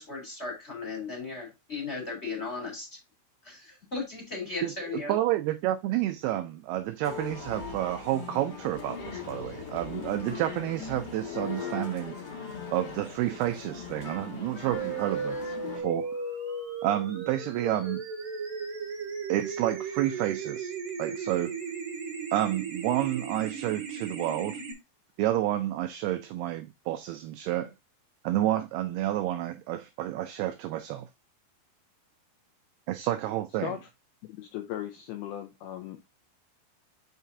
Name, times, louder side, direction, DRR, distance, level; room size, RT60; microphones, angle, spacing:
voice 1, 0.0-2.9 3.4-5.1, left 4 dB, 15° left, 2.8 m, -36 dB
voice 2, 4.6-12.2 12.7-16.1 16.8-18.0 19.3-20.7 21.0-21.6 22.3-24.6 25.2-27.7 28.2-31.1 32.9-33.7, right 14 dB, 90° right, 2.2 m, -30 dB
Male speech man speaking, 7.0-15.8, left 6 dB, 45° left, 2.1 m, -39 dB
sound 1, 14.7-24.7, right 5 dB, 60° right, 1.0 m, -36 dB
voice 3, 34.3-36.0, left 11 dB, 85° left, 2.2 m, -37 dB
7.1 x 5.6 x 2.6 m
omnidirectional pair, 5.2 m